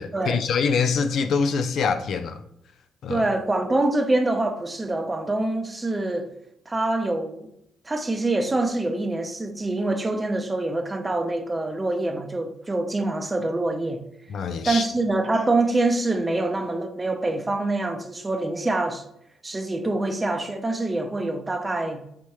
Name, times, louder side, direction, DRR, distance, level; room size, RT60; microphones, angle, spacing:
voice 1, 0.0-2.4 3.0-3.3 14.3-14.8, left 5 dB, 65° left, 0.3 m, -24 dB
voice 2, 3.1-6.3 6.7-7.5 7.8-14.0 14.7-19.0 19.4-22.0, right 2 dB, 20° right, 0.6 m, -25 dB
4.6 x 3.4 x 2.9 m
cardioid pair, 90°, 0 cm